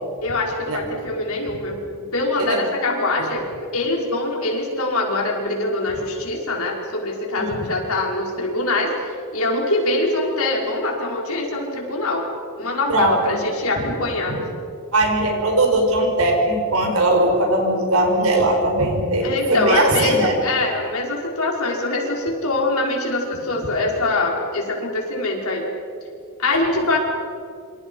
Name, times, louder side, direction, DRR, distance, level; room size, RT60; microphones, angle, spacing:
voice 1, 0.2-3.4 3.7-12.2 12.6-14.4 19.2-25.7 26.4-27.0, left 2 dB, 70° left, 0 dB, 5.2 m, -23 dB
voice 2, 12.9-13.4 14.3-14.4 14.9-20.4 26.8-26.9, right 1 dB, 70° right, 2 dB, 5.4 m, -19 dB
27.5 x 26.0 x 5.6 m, 2.4 s
head